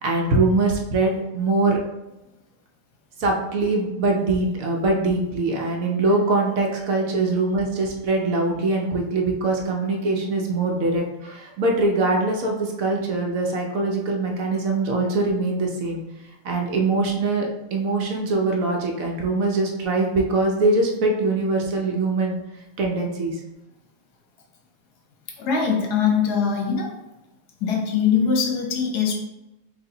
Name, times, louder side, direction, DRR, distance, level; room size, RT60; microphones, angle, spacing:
voice 1, 0.0-1.8 3.2-16.0 16.4-22.4 22.8-23.4, right 2 dB, 65° right, 0 dB, 1.1 m, -23 dB
voice 2, 25.4-27.0 27.6-29.1, left 6 dB, 80° left, 2 dB, 1.4 m, -22 dB
4.7 x 2.6 x 3.9 m, 0.96 s
omnidirectional pair, 1.7 m